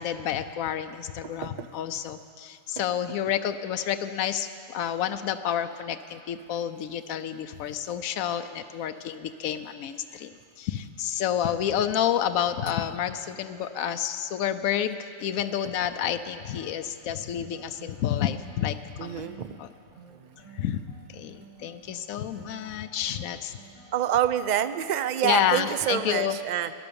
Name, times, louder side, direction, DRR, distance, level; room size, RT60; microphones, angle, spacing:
voice 1, 0.0-10.3 10.6-19.3 19.6-19.7 20.6-20.8 21.1-23.6 25.2-26.4, left 10 dB, 85° left, 9 dB, 1.0 m, -29 dB
voice 2, 1.2-1.7 19.0-19.6 20.1-20.4 23.9-26.7, right 10 dB, 60° right, 12 dB, 0.4 m, -27 dB
sound 1, 16.5-24.2, right 4 dB, 20° left, 5.3 m, -52 dB
18.5 x 10.5 x 6.9 m, 2.4 s
omnidirectional pair, 1.4 m